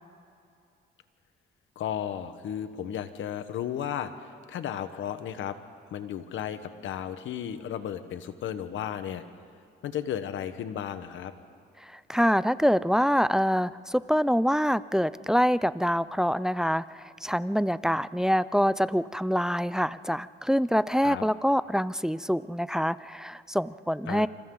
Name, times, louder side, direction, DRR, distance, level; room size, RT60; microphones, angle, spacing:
voice 1, 1.7-5.6 5.9-9.2 9.8-11.3 21.0-21.2 24.1-24.3, left 9 dB, 75° left, 10 dB, 1.3 m, -34 dB
voice 2, 11.8-24.3, equal, 5° right, 17 dB, 0.4 m, -25 dB
28.0 x 26.5 x 3.9 m, 2.5 s
cardioid pair, 90°, 20 cm